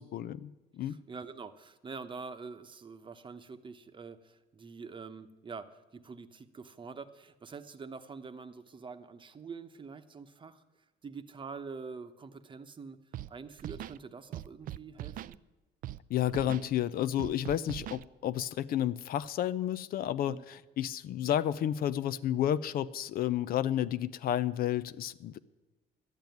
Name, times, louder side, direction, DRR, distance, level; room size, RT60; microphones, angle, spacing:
voice 1, 0.0-1.0 16.1-25.4, left 11 dB, 60° left, 15 dB, 0.5 m, -31 dB
voice 2, 0.8-10.6 11.0-13.0 13.3-15.4 20.3-20.4, right 5 dB, 30° right, 9 dB, 0.9 m, -45 dB
Scratching (performance technique), 13.1-13.3 13.6-14.0 14.3-15.3 15.8-16.0 16.3-16.7 17.2-18.0, right 13 dB, 55° right, 0.4 m, -41 dB
12.0 x 8.9 x 9.3 m, 1.1 s
cardioid pair, 110°, 17 cm